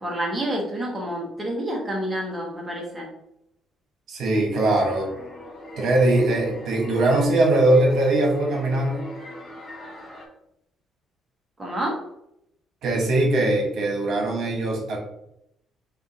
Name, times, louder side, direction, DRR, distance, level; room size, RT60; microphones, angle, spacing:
voice 1, 0.0-3.1 11.6-12.0, right 1 dB, 10° right, -2 dB, 0.9 m, -28 dB
voice 2, 4.1-5.2 5.8-9.0 12.8-15.0, right 2 dB, 60° right, 0 dB, 1.3 m, -21 dB
sound 1, 4.5-10.3, equal, 35° left, 0.9 m, -41 dB
6.8 x 2.4 x 2.8 m, 0.79 s
cardioid pair, 140°, 0 cm